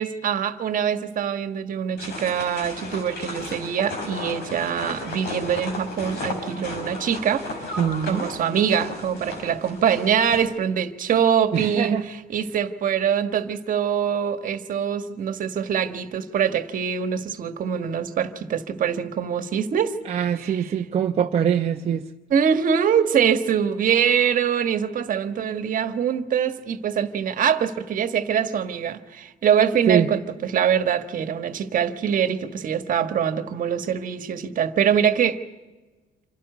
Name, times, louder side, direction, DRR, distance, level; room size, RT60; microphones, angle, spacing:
voice 1, 0.0-7.8 8.0-19.9 20.3-20.9 22.3-35.4, right 8 dB, 55° right, 1.6 m, -24 dB
sound 1, 2.0-10.4, left 2 dB, 75° left, 6.0 m, -34 dB
voice 2, 7.8-8.3 11.5-12.0 20.1-22.0 29.9-30.1, right 8 dB, 35° right, 0.9 m, -23 dB
27.5 x 12.0 x 9.4 m
cardioid pair, 110°, 17 cm